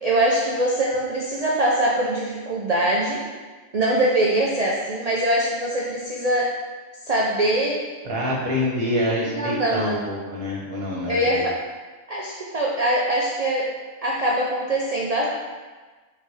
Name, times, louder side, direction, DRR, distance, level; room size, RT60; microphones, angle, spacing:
voice 1, 0.0-3.2 3.7-6.5 7.1-7.8 9.3-10.0 11.1-11.5 12.1-13.7 14.0-15.3, right 1 dB, 85° right, -3 dB, 0.3 m, -23 dB
voice 2, 8.0-11.4, left 1 dB, 50° right, -5 dB, 1.3 m, -26 dB
3.9 x 2.7 x 4.7 m, 1.4 s
omnidirectional pair, 1.3 m